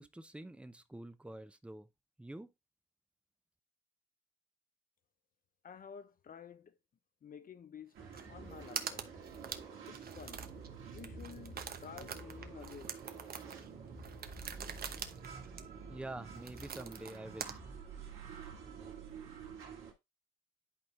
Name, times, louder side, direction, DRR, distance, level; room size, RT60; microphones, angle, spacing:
voice 1, 0.0-1.9 2.2-2.5 15.9-17.6, right 1 dB, 5° right, 0.7 m, -47 dB
voice 2, 5.6-6.8 7.2-9.1 9.9-10.5 10.8-13.0, left 7 dB, 45° left, 0.7 m, -52 dB
sound 1, 7.9-19.9, right 5 dB, 85° right, 2.5 m, -49 dB
sound 2, 8.1-8.3 8.5-10.7 10.9-17.6, right 7 dB, 50° right, 0.9 m, -44 dB
11.0 x 4.3 x 2.4 m
cardioid pair, 90°, 20 cm